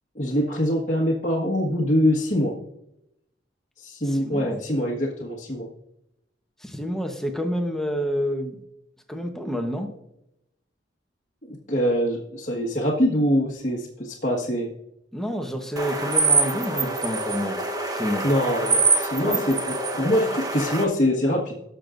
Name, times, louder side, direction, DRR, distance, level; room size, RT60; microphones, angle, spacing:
voice 1, 0.1-2.5 3.8-5.7 11.5-14.7 18.2-21.6, equal, 40° left, -4 dB, 1.5 m, -24 dB
voice 2, 4.0-4.6 6.6-8.6 9.1-9.9 15.1-17.6 17.9-18.3 19.2-19.4, equal, 5° left, 4 dB, 1.0 m, -29 dB
sound 1, 15.8-20.8, right 3 dB, 20° right, 1.0 m, -24 dB
18.0 x 6.8 x 2.5 m, 0.83 s
head